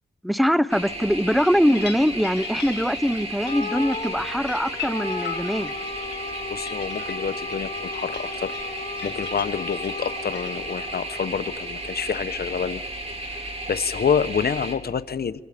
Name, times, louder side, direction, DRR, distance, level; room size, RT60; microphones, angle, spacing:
voice 1, 0.2-5.7, equal, ahead, 0.8 m, -22 dB
sound 1, 0.7-14.7, right 2 dB, 35° right, 3.6 m, -34 dB
sound 2, 1.3-10.7, left 8 dB, 80° left, 1.8 m, -40 dB
sound 3, 3.4-12.0, left 4 dB, 40° left, 1.4 m, -36 dB
voice 2, 6.5-12.8 13.4-15.4, left 6 dB, 65° left, 1.0 m, -28 dB
27.0 x 27.0 x 5.2 m
cardioid pair, 60°, 18 cm